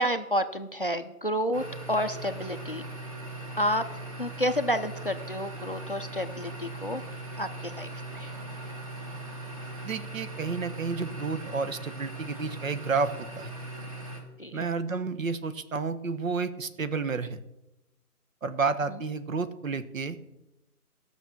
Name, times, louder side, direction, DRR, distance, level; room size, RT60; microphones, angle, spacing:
voice 1, 0.0-2.8 3.6-3.8 4.2-7.0 7.4-8.3 14.4-14.6 18.9-19.0, equal, 40° left, 10 dB, 0.5 m, -30 dB
sound 1, 1.5-14.2, right 2 dB, 25° right, 1.3 m, -40 dB
voice 2, 9.8-13.5 14.5-17.4 18.4-20.3, right 4 dB, 60° right, 12 dB, 1.0 m, -31 dB
14.0 x 6.2 x 7.1 m, 0.95 s
hypercardioid pair, 170°, 45 cm